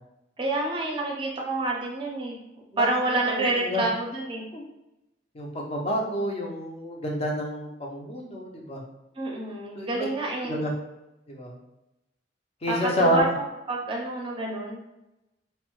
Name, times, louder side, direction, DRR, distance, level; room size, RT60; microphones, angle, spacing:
voice 1, 0.4-2.4 2.8-4.4 9.2-10.6 12.7-14.8, right 2 dB, 30° right, -1 dB, 0.5 m, -28 dB
voice 2, 3.3-3.8 4.5-4.6 5.3-8.8 9.7-10.1 10.4-10.7 11.3-11.5 12.6-13.3, equal, 35° left, 0 dB, 0.5 m, -28 dB
2.6 x 2.1 x 2.9 m, 0.92 s
head